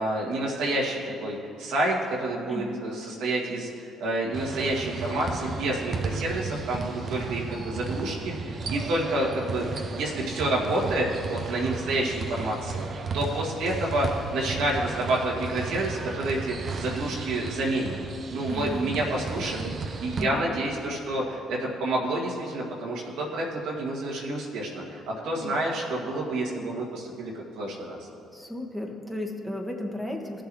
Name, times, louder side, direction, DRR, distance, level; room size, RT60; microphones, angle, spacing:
voice 1, 0.0-9.7 9.9-12.9 13.1-18.0 18.3-19.7 20.0-28.0, right 1 dB, 75° right, -4 dB, 2.0 m, -29 dB
voice 2, 2.5-2.8 18.5-18.8 20.2-20.5 25.2-25.5 28.3-30.5, left 1 dB, 5° left, 0 dB, 1.7 m, -34 dB
sound 1, 4.3-20.2, right 4 dB, 50° right, 0.9 m, -34 dB
16.5 x 6.9 x 3.1 m, 2.6 s
hypercardioid pair, 50°, 0 cm